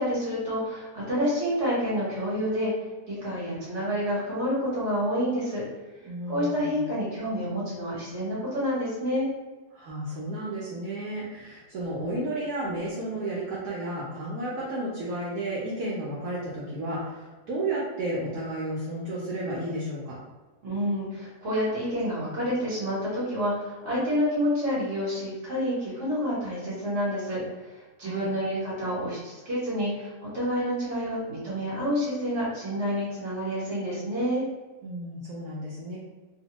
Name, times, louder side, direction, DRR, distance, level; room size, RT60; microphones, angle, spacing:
voice 1, 0.0-2.7 3.1-5.6 6.3-9.3 20.6-27.4 28.0-34.5, equal, 50° right, -8 dB, 1.3 m, -28 dB
voice 2, 6.0-6.8 9.7-20.2 28.0-28.3 34.8-36.0, right 1 dB, 75° right, -6 dB, 1.1 m, -32 dB
2.9 x 2.1 x 2.8 m, 1.3 s
omnidirectional pair, 1.7 m